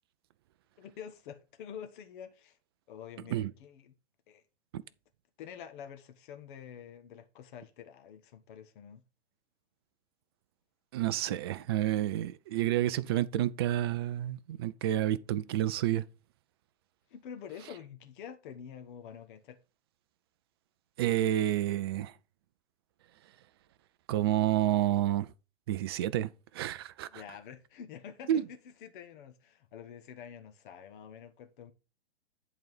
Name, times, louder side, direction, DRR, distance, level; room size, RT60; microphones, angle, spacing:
voice 1, 0.8-2.6 2.9-3.9 4.3-4.4 4.7-4.8 5.4-9.0 17.1-19.6 27.1-28.4 28.8-31.7, left 8 dB, 45° left, 1.4 m, -47 dB
voice 2, 10.9-16.1 21.0-22.1 24.1-25.3 25.7-27.2 28.3-28.5, right 13 dB, 25° right, 0.3 m, -29 dB
10.5 x 4.0 x 4.9 m
figure-of-eight pair, 120°, 34 cm